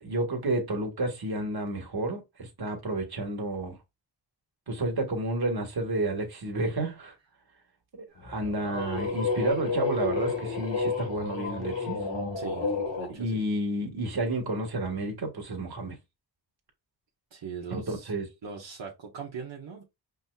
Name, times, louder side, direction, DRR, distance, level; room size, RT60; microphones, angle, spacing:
voice 1, 0.0-3.8 4.7-7.1 7.9-12.0 13.1-16.0 17.9-18.2, right 2 dB, 55° right, 1.8 m, -31 dB
sound 1, 8.2-13.1, left 4 dB, 75° left, 1.9 m, -31 dB
voice 2, 12.3-13.4 17.3-18.1 18.4-19.8, right 6 dB, 80° right, 1.4 m, -40 dB
5.4 x 3.4 x 2.4 m
cardioid pair, 55°, 44 cm